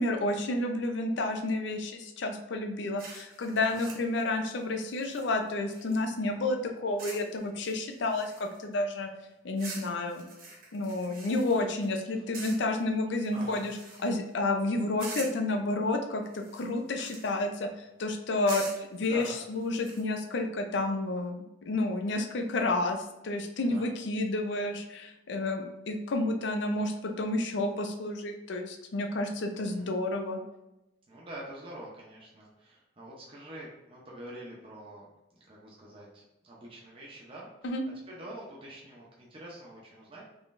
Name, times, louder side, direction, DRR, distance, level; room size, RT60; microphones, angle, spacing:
voice 1, 0.0-9.1 9.4-10.2 10.7-13.8 14.0-17.7 18.0-30.4 37.6-37.8, left 2 dB, 65° left, 5 dB, 0.5 m, -30 dB
sound 1, 3.0-6.2 7.0-7.3 7.6-8.7 9.6-11.9 12.3-12.8 13.2-14.3 15.0-15.5 16.2-17.4 18.5-20.0, right 3 dB, 50° right, 0.9 m, -45 dB
voice 2, 13.3-13.6 19.0-19.4 23.6-23.9 29.5-29.9 31.1-35.1 35.3-37.7 38.1-40.3, right 1 dB, 25° right, -5 dB, 0.6 m, -46 dB
3.8 x 3.1 x 2.5 m, 0.96 s
head